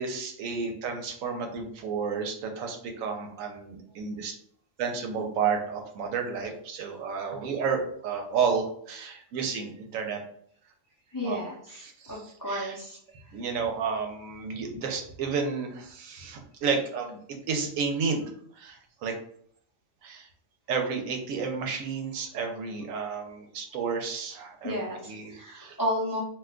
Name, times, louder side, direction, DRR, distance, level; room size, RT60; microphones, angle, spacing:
voice 1, 0.0-4.3 4.8-10.2 11.2-11.4 11.8-12.8 13.3-19.1 20.0-20.3 20.7-24.8 25.0-25.8, right 5 dB, 90° right, 3 dB, 1.0 m, -31 dB
voice 2, 11.1-13.0 24.6-26.2, equal, 35° left, -5 dB, 0.3 m, -32 dB
2.5 x 2.2 x 3.6 m, 0.64 s
omnidirectional pair, 1.4 m